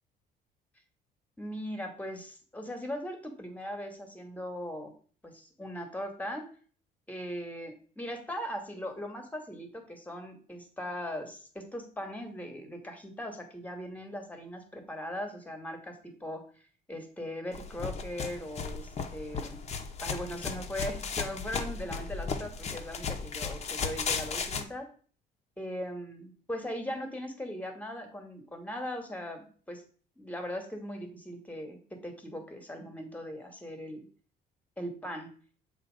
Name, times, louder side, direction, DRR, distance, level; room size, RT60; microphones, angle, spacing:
voice 1, 1.4-4.9 5.2-6.5 7.1-16.4 16.9-19.6 20.0-24.9 25.6-29.8 30.2-34.0 34.8-35.3, equal, 10° left, 5 dB, 1.4 m, -39 dB
sound 1, 17.5-24.6, left 5 dB, 40° left, 0.8 m, -35 dB
7.4 x 3.0 x 5.0 m, 0.44 s
cardioid pair, 110°, 17 cm